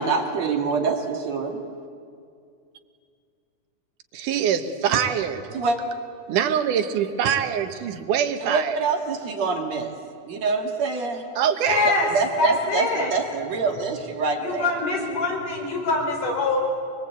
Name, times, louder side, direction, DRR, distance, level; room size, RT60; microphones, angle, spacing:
voice 1, 0.0-1.6 5.5-5.8 8.4-9.9 10.3-11.3 11.8-14.7, right 4 dB, 60° right, 3 dB, 3.1 m, -25 dB
voice 2, 4.1-5.5 6.3-8.8 11.4-11.9, right 8 dB, 80° right, 8 dB, 2.8 m, -24 dB
voice 3, 11.7-12.1 12.4-13.1 14.4-16.6, left 3 dB, 85° left, -1 dB, 6.6 m, -24 dB
24.0 x 23.0 x 8.3 m, 2.3 s
omnidirectional pair, 3.6 m